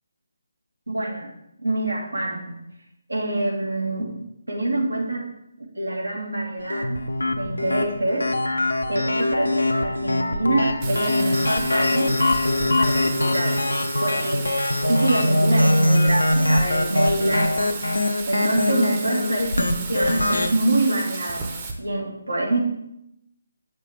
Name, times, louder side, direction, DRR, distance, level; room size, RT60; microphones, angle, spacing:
voice 1, 0.9-1.3 1.6-2.6 3.1-5.3 5.6-7.0 7.3-8.3 8.9-12.1 12.8-13.6 14.0-14.5 14.9-17.8 18.3-22.6, right 2 dB, 85° right, 0 dB, 1.7 m, -26 dB
sound 1, 6.7-20.5, left 1 dB, 80° left, 0.6 m, -22 dB
Bathtub (filling or washing), 10.8-21.7, right 4 dB, 25° right, 0.8 m, -34 dB
7.2 x 5.3 x 3.3 m, 0.82 s
figure-of-eight pair, 150°, 0 cm